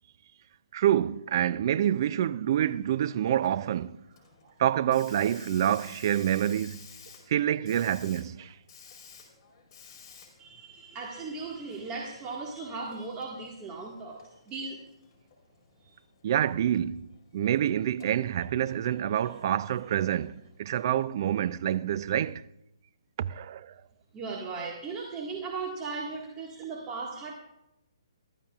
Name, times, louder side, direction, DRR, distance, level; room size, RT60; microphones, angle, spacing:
voice 1, 0.7-4.0 4.6-6.9 7.3-8.5 16.2-17.1 17.3-22.4 23.2-23.7, right 11 dB, 45° right, 0.5 m, -27 dB
Hiss, 2.6-21.0, left 6 dB, 30° left, 4.5 m, -55 dB
voice 2, 10.4-14.8 24.1-27.3, right 4 dB, 20° right, 1.8 m, -37 dB
24.0 x 12.5 x 2.4 m
hypercardioid pair, 140°, 3 cm